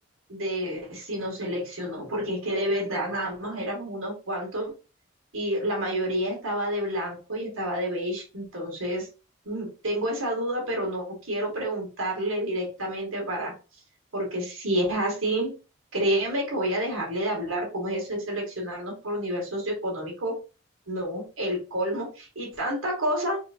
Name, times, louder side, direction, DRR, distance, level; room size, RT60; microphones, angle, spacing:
voice 1, 0.3-4.7 5.3-9.1 9.4-13.5 14.1-15.5 15.9-20.3 20.9-23.4, right 1 dB, 80° right, -1 dB, 2.2 m, -29 dB
4.7 x 3.2 x 2.6 m, 0.33 s
head